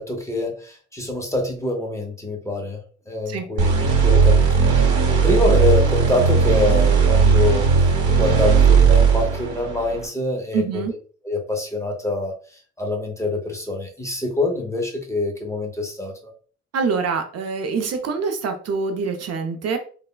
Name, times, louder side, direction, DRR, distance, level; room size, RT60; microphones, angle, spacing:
voice 1, 0.0-10.8 11.2-12.3 12.8-16.3, left 2 dB, 10° left, 2 dB, 0.6 m, -25 dB
sound 1, 3.6-10.0, right 5 dB, 85° right, 1.0 m, -16 dB
voice 2, 10.5-10.9 16.7-19.8, right 5 dB, 55° right, 6 dB, 0.5 m, -25 dB
3.2 x 2.1 x 2.2 m, 0.42 s
cardioid pair, 90°, 30 cm